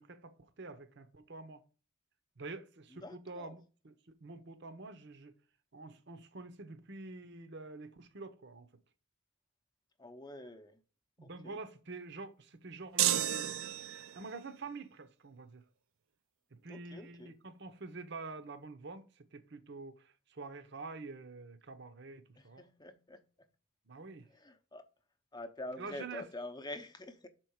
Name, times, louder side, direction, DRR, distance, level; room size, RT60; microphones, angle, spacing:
voice 1, 0.0-1.6 2.4-5.3 5.7-8.7 11.2-13.5 14.1-15.6 16.5-22.6 23.9-24.3 25.8-26.2, right 3 dB, 55° right, 0.8 m, -47 dB
voice 2, 2.9-3.6 10.0-10.8 11.2-11.6 16.7-17.3 22.4-23.2 24.3-24.8 25.3-27.3, left 1 dB, 20° left, 0.7 m, -46 dB
sound 1, 13.0-14.3, right 11 dB, 75° right, 0.4 m, -31 dB
6.2 x 4.5 x 6.3 m
head